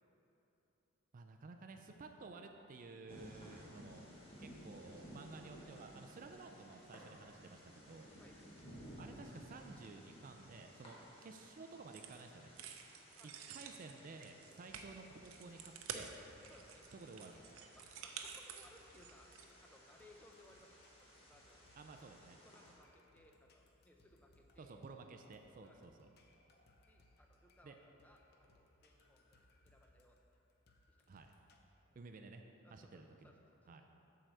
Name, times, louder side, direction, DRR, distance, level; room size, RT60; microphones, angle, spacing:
voice 1, 1.1-4.0 4.4-8.1 9.0-12.5 13.5-16.1 16.9-17.4 21.8-22.4 24.6-26.1 27.6-27.8 31.1-31.3 32.0-32.4 32.7-33.3 33.7-33.9, right 3 dB, 40° right, 5 dB, 0.4 m, -54 dB
sound 1, 3.1-22.7, equal, 25° left, 1.4 m, -58 dB
voice 2, 8.1-8.6 10.9-11.1 13.0-13.5 16.5-16.9 17.7-19.3 19.6-21.7 22.4-24.8 25.6-25.9 26.9-30.2 30.9-31.2 31.8-32.0 32.6-33.9, left 1 dB, 10° left, 1 dB, 0.6 m, -66 dB
sound 2, 11.9-12.2 12.6-19.4, right 7 dB, 85° right, 0.6 m, -50 dB
sound 3, 14.7-31.6, left 1 dB, 50° left, 0.7 m, -71 dB
7.6 x 4.7 x 6.6 m, 2.9 s
head